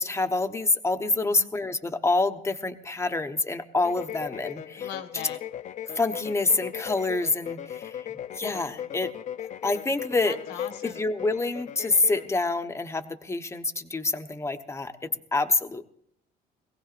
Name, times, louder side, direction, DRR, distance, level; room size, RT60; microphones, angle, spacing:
voice 1, 0.0-4.9 5.9-8.1 8.3-9.1 9.6-10.4 10.8-15.8, left 3 dB, 15° left, 8 dB, 1.0 m, -27 dB
sound 1, 3.8-12.3, left 10 dB, 45° left, 0.5 m, -38 dB
voice 2, 4.8-5.4 10.2-11.0, left 8 dB, 90° left, 7 dB, 1.5 m, -39 dB
22.0 x 17.0 x 2.5 m, 0.70 s
cardioid pair, 110°, 17 cm